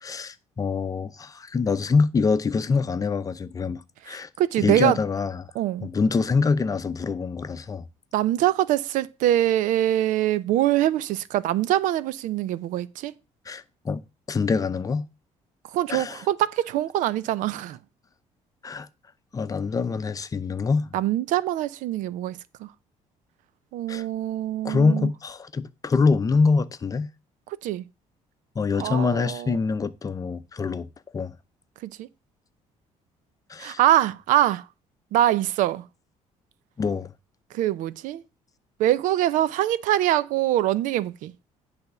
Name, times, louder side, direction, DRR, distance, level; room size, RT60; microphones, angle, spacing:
voice 1, 0.0-4.3 4.6-5.5 5.8-7.8 13.5-14.0 14.3-15.1 15.9-16.2 18.6-18.9 19.3-20.9 23.9-24.1 24.6-27.1 28.6-30.9 31.1-31.3 33.5-33.8 36.8-37.1, left 4 dB, 25° left, 0.7 m, -25 dB
voice 2, 4.0-5.0 5.5-5.9 8.1-13.1 15.7-17.8 20.9-22.7 23.7-25.1 27.5-27.8 28.8-29.6 31.8-32.1 33.6-34.7 35.1-35.8 37.5-38.2 38.8-41.3, right 13 dB, 80° right, 0.6 m, -24 dB
10.5 x 3.5 x 6.8 m
cardioid pair, 110°, 13 cm